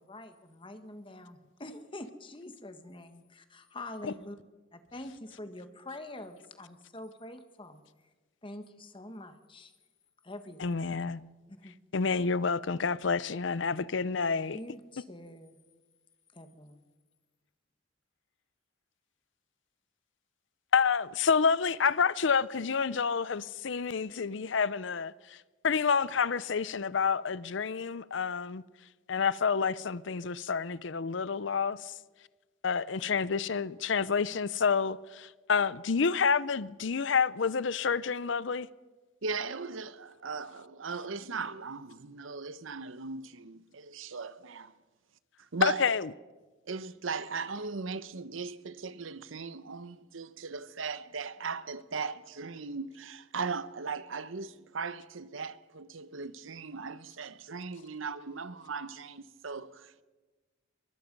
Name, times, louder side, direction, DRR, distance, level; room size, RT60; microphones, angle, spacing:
voice 1, 0.0-4.4 4.7-7.8 8.4-9.7 10.2-10.7 11.5-11.7 14.5-15.6 16.3-16.8, left 1 dB, 25° left, 1.4 m, -45 dB
voice 2, 10.6-11.2 11.9-14.6 20.7-25.4 25.6-28.6 29.1-31.9 32.6-38.7 45.6-46.1, left 5 dB, 65° left, 0.6 m, -29 dB
voice 3, 39.2-44.7 45.5-45.9 46.7-60.0, right 4 dB, 80° right, 0.9 m, -38 dB
23.0 x 22.0 x 5.3 m
head